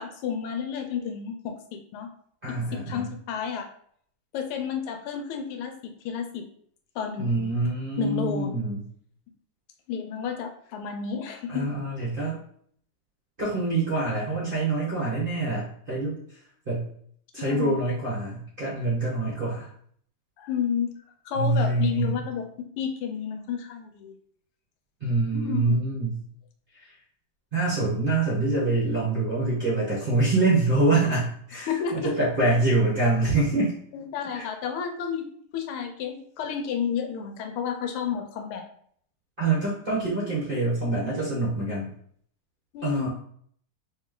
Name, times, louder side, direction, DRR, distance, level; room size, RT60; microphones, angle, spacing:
voice 1, 0.0-2.1 2.5-3.7 4.3-6.5 7.0-7.5 8.0-8.5 9.9-11.7 17.4-17.8 20.4-20.9 21.3-24.1 25.3-25.8 31.7-32.2 33.9-35.3 35.5-38.6 42.7-43.1, left 7 dB, 80° left, 5 dB, 1.5 m, -31 dB
voice 2, 2.4-3.1 7.2-8.8 11.5-12.4 13.4-16.2 16.7-16.9 17.3-19.7 21.3-22.2 25.0-26.1 26.8-26.9 27.5-33.7 34.3-34.5 39.4-41.9 42.8-43.1, right 2 dB, 40° right, -7 dB, 0.8 m, -25 dB
3.2 x 3.1 x 3.7 m, 0.62 s
omnidirectional pair, 2.4 m